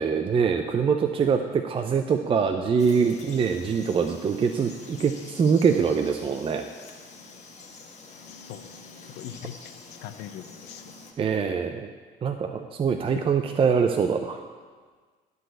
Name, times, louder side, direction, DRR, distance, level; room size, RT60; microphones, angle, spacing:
voice 1, 0.0-6.6 11.2-11.9 12.2-14.4, right 6 dB, 30° right, 6 dB, 0.5 m, -24 dB
Frog, 2.8-11.1, left 4 dB, 45° left, 1.3 m, -46 dB
voice 2, 8.3-8.8 9.2-10.9, left 10 dB, 85° left, 10 dB, 0.7 m, -42 dB
11.5 x 4.1 x 7.8 m, 1.5 s
cardioid pair, 110°, 17 cm